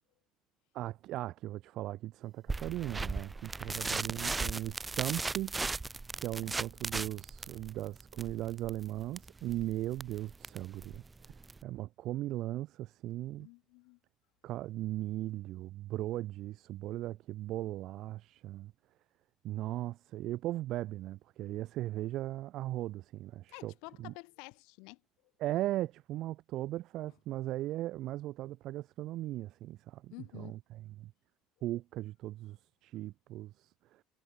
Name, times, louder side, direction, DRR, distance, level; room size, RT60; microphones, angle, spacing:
voice 1, 0.7-5.8 6.2-13.5 14.4-18.7 19.4-23.7 24.0-24.1 25.4-31.1 31.6-34.0, right 15 dB, 60° right, 1.5 m, -38 dB
sound 1, 2.5-11.6, right 3 dB, 15° right, 0.3 m, -38 dB
voice 2, 13.4-14.0 23.5-25.0 30.1-30.6, left 30 dB, 80° left, 0.9 m, -50 dB
cardioid pair, 125°, 0 cm